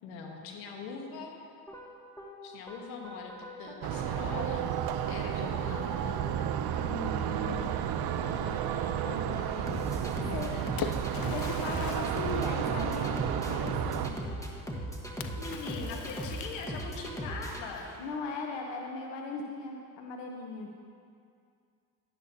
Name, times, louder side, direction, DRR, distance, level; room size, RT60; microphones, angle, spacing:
voice 1, 0.0-1.3 2.4-3.3 3.6-4.7 5.1-6.3 8.1-10.9 15.3-17.9, left 4 dB, 85° left, 2 dB, 1.3 m, -42 dB
sound 1, 1.7-18.3, equal, 5° left, 1.3 m, -40 dB
sound 2, 3.8-14.1, right 10 dB, 55° right, 0.6 m, -32 dB
voice 2, 6.8-7.7 10.3-10.5 11.3-14.2 18.0-20.7, left 4 dB, 65° left, 2 dB, 1.0 m, -38 dB
Splash splatter, 10.2-13.4 15.2-17.1, left 8 dB, 50° left, 0.6 m, -42 dB
11.5 x 10.5 x 2.8 m, 2.3 s
supercardioid pair, 75°, 46 cm